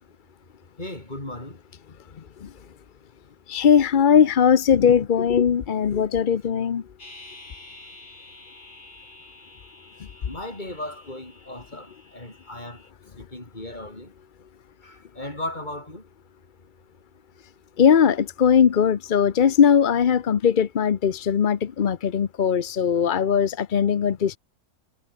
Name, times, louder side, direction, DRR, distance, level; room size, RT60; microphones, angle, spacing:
voice 1, 0.8-1.6 6.3-6.4 10.3-12.8 13.2-14.1 14.8-16.0, left 1 dB, 25° left, 5.4 m, -36 dB
voice 2, 3.5-6.8 17.8-24.4, left 7 dB, 50° left, 0.6 m, -19 dB
sound 1, 7.0-12.9, left 2 dB, 70° left, 6.9 m, -48 dB
omnidirectional pair, 1.7 m